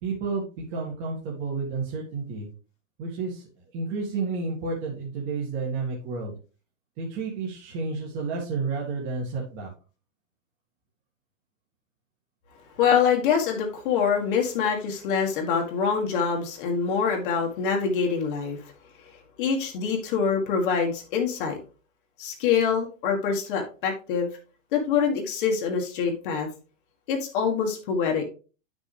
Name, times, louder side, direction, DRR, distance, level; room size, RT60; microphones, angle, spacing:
voice 1, 0.0-2.5 3.0-3.5 3.7-6.3 7.0-9.7, right 4 dB, 30° right, -3 dB, 1.9 m, -31 dB
voice 2, 12.8-18.6 19.4-21.6 22.2-24.3 24.7-26.5 27.1-28.2, left 6 dB, 40° left, 1 dB, 1.6 m, -25 dB
9.5 x 6.3 x 3.3 m, 0.36 s
hypercardioid pair, 165°, 39 cm